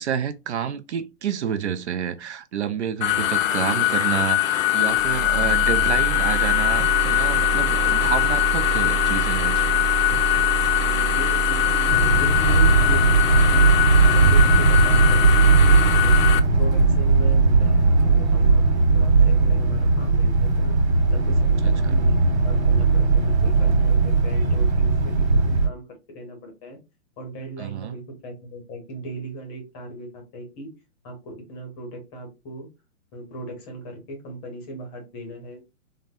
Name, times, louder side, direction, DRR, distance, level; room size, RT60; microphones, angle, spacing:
voice 1, 0.0-9.8 21.6-22.0 27.6-28.0, right 8 dB, 55° right, 0.5 m, -29 dB
sound 1, 3.0-16.4, left 14 dB, 70° left, 0.6 m, -22 dB
sound 2, 4.9-16.8, right 12 dB, 10° right, 1.0 m, -29 dB
voice 2, 10.8-13.7 14.0-18.6 18.9-20.7 21.1-26.8 27.2-30.7 31.0-32.7 33.1-35.7, right 1 dB, 20° left, 0.7 m, -38 dB
sound 3, 11.9-25.7, right 4 dB, 80° right, 1.5 m, -18 dB
3.8 x 2.1 x 2.6 m
hypercardioid pair, 155°, 41 cm